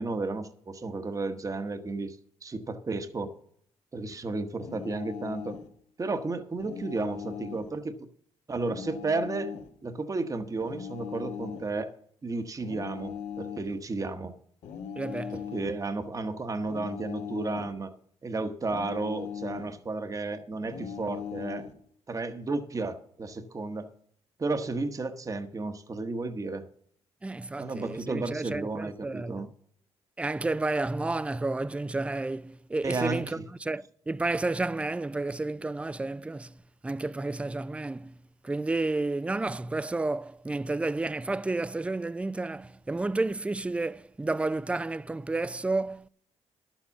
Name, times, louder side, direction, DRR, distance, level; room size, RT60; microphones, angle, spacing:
voice 1, 0.0-2.2 2.4-3.4 3.9-5.6 6.0-8.0 8.5-9.5 9.8-11.9 12.2-14.4 15.3-17.9 18.2-21.7 22.1-23.9 24.4-26.6 27.6-29.5 32.8-33.2, right 3 dB, 30° right, 1.0 m, -33 dB
sound 1, 4.6-5.7 6.6-7.7 8.6-9.7 10.6-11.7 12.6-13.8 14.6-15.8 16.6-17.8 18.6-19.8 20.6-21.8, left 8 dB, 75° left, 1.3 m, -39 dB
voice 2, 15.0-15.4 27.2-29.4 30.2-36.6 36.8-38.2 38.4-46.1, right 2 dB, 10° right, 0.4 m, -31 dB
11.5 x 7.2 x 7.0 m
cardioid pair, 80°, 12 cm